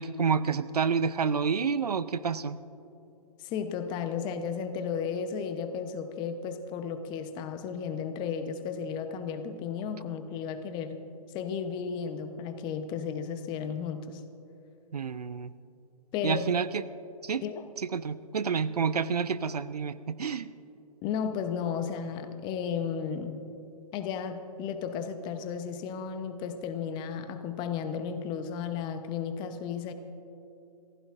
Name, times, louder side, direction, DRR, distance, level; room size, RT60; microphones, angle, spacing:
voice 1, 0.0-2.6 14.9-15.5 16.2-16.8 17.2-17.4 17.9-20.5, right 6 dB, 80° right, 15 dB, 0.6 m, -29 dB
voice 2, 3.4-11.0 11.3-14.2 16.1-16.5 17.4-17.7 21.0-23.4 23.9-29.9, left 7 dB, 25° left, 8 dB, 0.9 m, -34 dB
29.0 x 15.5 x 2.6 m, 2.7 s
figure-of-eight pair, 130°, 20 cm